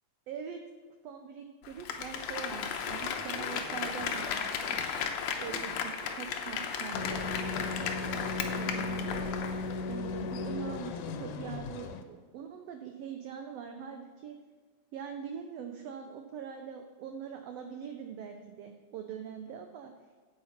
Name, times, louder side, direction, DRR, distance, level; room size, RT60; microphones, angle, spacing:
voice 1, 0.3-0.6 1.0-4.8 5.4-9.3 9.9-14.3 14.9-19.9, right 7 dB, 85° right, 5 dB, 1.4 m, -43 dB
Applause, 1.6-9.8 10.2-10.3, left 7 dB, 70° left, 1.7 m, -35 dB
sound 1, 2.9-9.4, right 2 dB, 55° right, 2.0 m, -52 dB
sound 2, 6.9-12.0, left 3 dB, 90° left, 2.1 m, -36 dB
8.1 x 8.1 x 4.3 m, 1.5 s
omnidirectional pair, 3.5 m